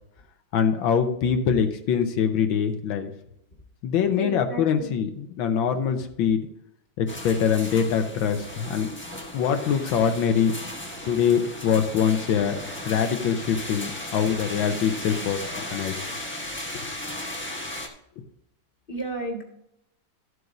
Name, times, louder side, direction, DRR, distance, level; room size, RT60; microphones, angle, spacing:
voice 1, 0.5-3.1 3.8-6.5 7.0-8.9 9.3-10.5 11.0-16.0, left 7 dB, 75° left, 7 dB, 1.6 m, -24 dB
voice 2, 4.2-4.9 18.9-19.4, right 1 dB, 30° left, 1 dB, 1.8 m, -32 dB
sound 1, 7.1-17.9, left 1 dB, 10° left, 0.7 m, -36 dB
13.5 x 7.9 x 2.6 m, 0.78 s
omnidirectional pair, 2.2 m